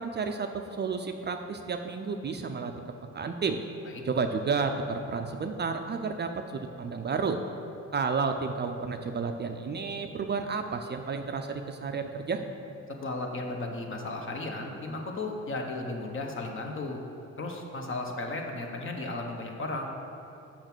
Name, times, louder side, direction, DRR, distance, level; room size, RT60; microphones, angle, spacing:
voice 1, 0.0-2.7 3.1-3.6 4.0-7.4 7.9-12.4, right 5 dB, 35° right, 6 dB, 0.5 m, -31 dB
voice 2, 13.0-17.0 17.4-20.1, left 2 dB, 40° left, 1 dB, 1.2 m, -35 dB
6.6 x 5.8 x 6.1 m, 2.7 s
cardioid pair, 90°, 30 cm